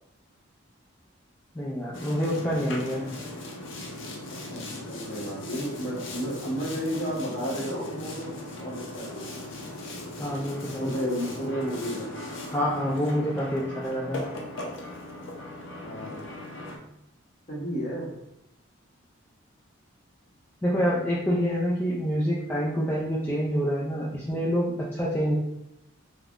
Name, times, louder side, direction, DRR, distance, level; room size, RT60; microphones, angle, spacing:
voice 1, 1.5-3.1 10.2-10.9 12.5-14.3 20.6-25.3, equal, 10° left, -7 dB, 0.3 m, -27 dB
Boat Water vehicle, 1.9-16.8, left 1 dB, 65° left, 0.5 m, -38 dB
voice 2, 4.5-8.3 8.6-9.4 10.8-12.1 15.8-16.3 17.5-18.1, equal, 35° left, -5 dB, 0.9 m, -32 dB
3.3 x 2.2 x 2.4 m, 0.85 s
head